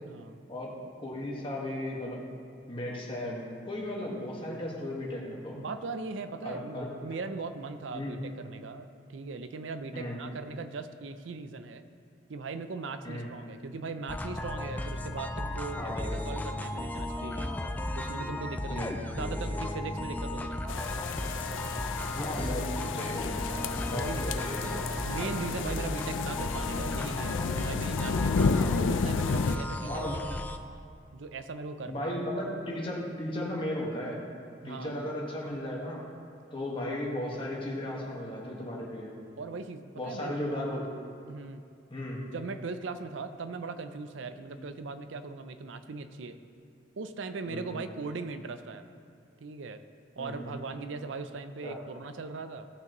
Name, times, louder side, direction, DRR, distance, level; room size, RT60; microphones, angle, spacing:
voice 1, 0.1-0.5 5.5-11.8 12.3-17.5 17.9-20.8 21.4-21.7 23.5-24.7 25.0-30.4 31.1-32.1 34.6-34.9 39.4-40.3 41.3-41.6 42.3-46.4 47.0-48.8 49.4-49.8 50.2-52.7, right 4 dB, 85° right, 10 dB, 0.5 m, -39 dB
voice 2, 1.0-2.2 2.7-5.6 6.4-6.9 7.9-8.2 9.9-10.2 13.0-13.3 15.7-16.2 18.7-18.9 19.3-19.8 22.1-23.3 23.9-24.8 29.8-30.2 31.8-34.2 34.6-36.0 36.5-39.2 39.9-40.9 41.9-42.2 44.6-44.7 47.5-47.8 50.2-50.6 51.6-51.8, left 1 dB, 30° left, -3 dB, 1.6 m, -35 dB
sound 1, 14.1-30.6, left 1 dB, 10° left, 0.3 m, -35 dB
sound 2, 20.7-29.6, left 5 dB, 85° left, 0.4 m, -32 dB
16.5 x 5.8 x 3.0 m, 2.5 s
head